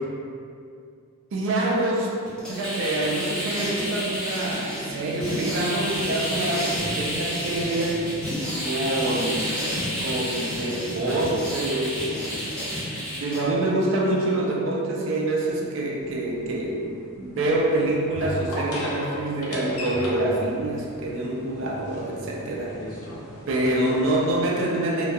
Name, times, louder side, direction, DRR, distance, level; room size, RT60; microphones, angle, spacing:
voice 1, 1.3-2.1 2.5-8.0 8.6-9.7 10.0-12.3 13.2-16.9 17.2-22.8 23.5-25.1, right 2 dB, 60° right, -2 dB, 0.4 m, -26 dB
sound 1, 2.3-13.4, equal, 5° left, 0.5 m, -30 dB
sound 2, 16.0-24.6, left 1 dB, 85° left, 0.5 m, -37 dB
2.2 x 2.1 x 2.6 m, 2.3 s
head